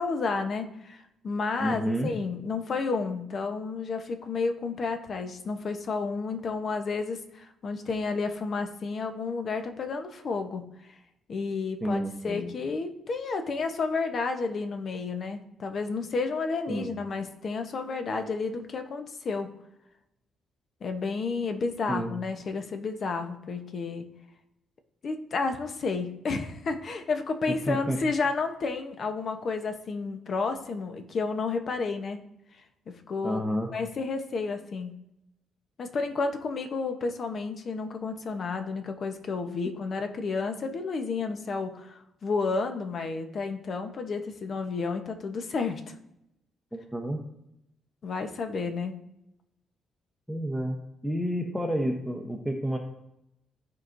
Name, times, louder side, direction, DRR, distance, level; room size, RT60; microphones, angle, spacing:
voice 1, 0.0-10.6 11.3-19.5 20.8-24.1 25.0-32.2 32.9-33.4 33.7-34.9 35.8-45.9 48.0-49.0, left 4 dB, 50° left, 6 dB, 0.9 m, -31 dB
voice 2, 1.6-2.1 11.8-12.6 16.7-16.9 21.9-22.1 27.7-28.0 33.2-33.7 46.7-47.2 50.3-50.8 51.0-52.8, equal, ahead, 1 dB, 0.9 m, -30 dB
13.5 x 4.7 x 2.6 m, 0.84 s
cardioid pair, 90°, 0 cm